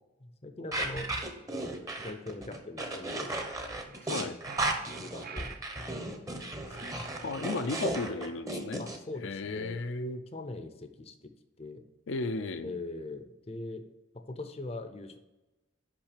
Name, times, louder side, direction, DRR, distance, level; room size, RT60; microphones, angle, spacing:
voice 1, 0.2-1.1 2.0-3.4 3.8-4.1 4.5-4.6 5.0-7.4 8.1-8.3 8.8-9.8 10.3-11.3 11.6-11.8 12.6-13.8 14.3-15.2, left 2 dB, 30° left, 8 dB, 0.6 m, -42 dB
sound 1, 0.7-9.0, right 2 dB, 15° right, 0.8 m, -35 dB
sound 2, 3.8-6.0 6.7-7.9, right 5 dB, 45° right, 0.6 m, -48 dB
voice 2, 7.2-8.8 9.2-10.2 12.1-12.7, left 3 dB, 75° left, 8 dB, 0.5 m, -34 dB
5.9 x 5.5 x 6.6 m, 1.0 s
head